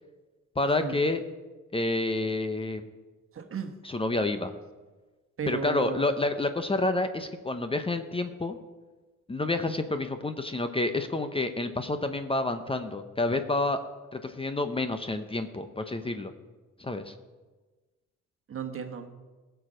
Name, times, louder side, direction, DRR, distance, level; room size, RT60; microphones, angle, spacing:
voice 1, 0.6-1.2 1.7-2.9 3.8-4.5 5.5-8.6 9.3-13.8 14.1-16.3 16.8-17.1, left 2 dB, 20° left, 8 dB, 0.8 m, -29 dB
voice 2, 3.3-3.7 5.4-6.1 18.5-19.1, right 6 dB, 45° right, 6 dB, 1.4 m, -34 dB
16.0 x 7.0 x 6.3 m, 1.3 s
cardioid pair, 90°, 30 cm